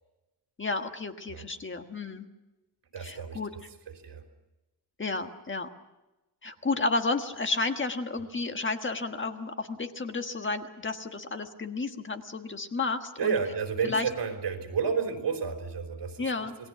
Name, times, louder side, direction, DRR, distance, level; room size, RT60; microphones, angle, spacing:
voice 1, 0.6-2.3 3.0-3.5 5.0-5.7 6.4-13.4 13.8-14.1 16.2-16.6, left 3 dB, 30° left, 6 dB, 1.5 m, -32 dB
voice 2, 2.9-3.4 4.0-4.2 13.2-16.5, right 6 dB, 90° right, 4 dB, 3.9 m, -31 dB
28.0 x 20.0 x 6.0 m, 1.0 s
wide cardioid pair, 165°, 41 cm